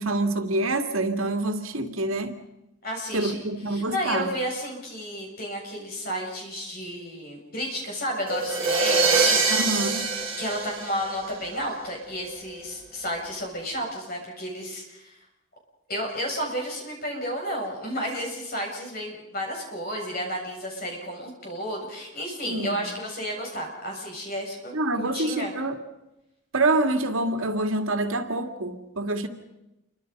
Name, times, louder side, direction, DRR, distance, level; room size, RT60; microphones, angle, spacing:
voice 1, 0.0-2.3 3.1-4.3 9.5-10.1 22.5-22.7 24.7-25.8 26.5-29.3, right 2 dB, 85° right, 2.3 m, -26 dB
voice 2, 2.8-3.4 3.7-9.5 10.4-15.1 15.9-25.5, equal, 45° left, 7.6 m, -32 dB
sound 1, 8.3-11.5, right 4 dB, 25° right, 6.0 m, -24 dB
28.5 x 24.5 x 5.4 m
head